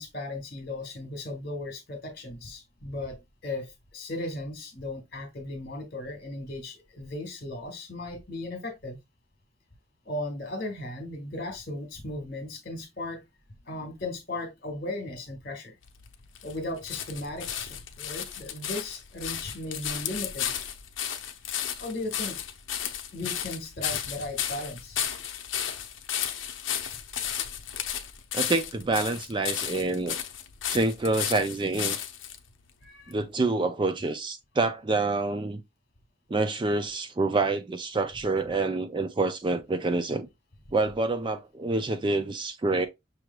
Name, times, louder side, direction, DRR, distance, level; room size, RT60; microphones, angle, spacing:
voice 1, 0.0-9.0 10.0-13.2 13.6-15.7 16.4-20.5 21.8-22.4 23.1-25.0 32.8-33.2, left 2 dB, 50° left, 1.5 m, -36 dB
sound 1, 15.8-32.4 33.1-33.2, left 9 dB, 70° left, 0.6 m, -34 dB
voice 2, 28.3-30.2 30.6-32.0 33.1-35.6 36.3-40.3 40.7-42.9, right 3 dB, 25° right, 0.4 m, -27 dB
6.0 x 3.2 x 2.2 m
head